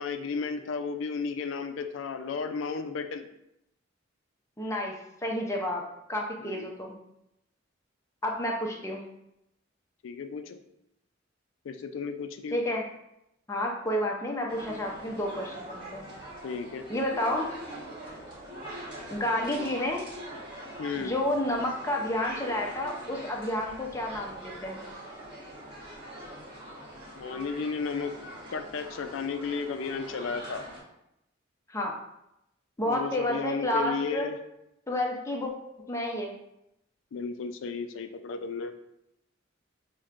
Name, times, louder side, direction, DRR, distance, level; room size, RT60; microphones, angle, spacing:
voice 1, 0.0-3.3 6.4-6.8 10.0-10.6 11.6-12.6 16.4-16.8 20.8-21.1 27.2-28.1 28.5-30.6 32.9-34.4 37.1-38.7, left 5 dB, 80° left, 8 dB, 0.4 m, -33 dB
voice 2, 4.6-5.0 5.2-5.8 6.1-7.0 8.2-9.0 12.5-12.8 13.5-16.0 16.9-17.5 19.1-20.1 21.0-24.8 31.7-31.9 32.8-34.3 34.9-35.5 35.8-36.3, left 1 dB, 15° left, -1 dB, 0.5 m, -30 dB
sound 1, 14.5-30.8, right 1 dB, 25° right, 1.2 m, -43 dB
6.0 x 2.1 x 2.5 m, 0.83 s
head